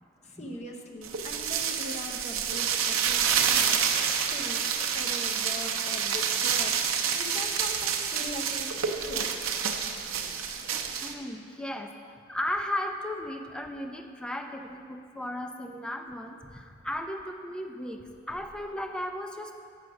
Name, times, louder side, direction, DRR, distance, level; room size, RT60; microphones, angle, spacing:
voice 1, 0.2-4.1 4.3-4.7 4.9-6.8 7.1-9.3, left 1 dB, 35° left, 1 dB, 0.8 m, -41 dB
sound 1, 1.0-11.1, right 7 dB, 70° right, 0.6 m, -28 dB
voice 2, 11.0-11.9 12.3-18.0 18.3-19.6, left 1 dB, 5° left, 4 dB, 0.4 m, -35 dB
7.4 x 6.3 x 5.8 m, 2.3 s
head